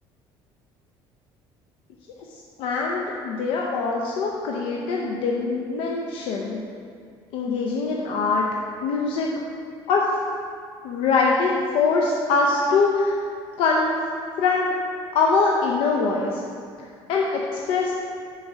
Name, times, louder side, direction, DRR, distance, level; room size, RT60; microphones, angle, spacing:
voice 1, 2.6-6.6 7.3-8.4 8.8-9.3 9.9-10.0 10.8-13.2 13.6-13.9 14.4-14.7 15.1-16.4 17.1-17.9, left 4 dB, 70° left, -2 dB, 0.6 m, -23 dB
7.2 x 3.8 x 6.1 m, 2.2 s
cardioid pair, 175°, 10 cm